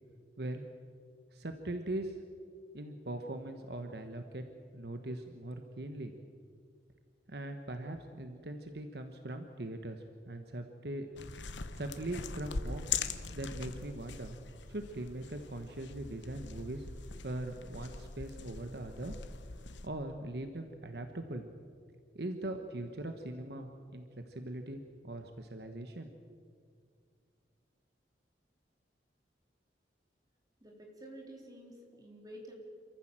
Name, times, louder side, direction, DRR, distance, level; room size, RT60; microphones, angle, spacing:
voice 1, 1.3-2.2 2.7-4.4 4.7-6.1 7.3-11.1 11.7-12.9 13.3-14.4 14.7-16.9 17.2-19.2 19.8-21.4 22.1-26.4, right 1 dB, 60° right, 6 dB, 1.2 m, -41 dB
sound 1, 11.2-19.9, left 5 dB, 90° left, 1.1 m, -42 dB
voice 2, 30.6-32.5, right 1 dB, 20° right, 0 dB, 3.8 m, -50 dB
27.0 x 14.5 x 7.5 m, 2.2 s
head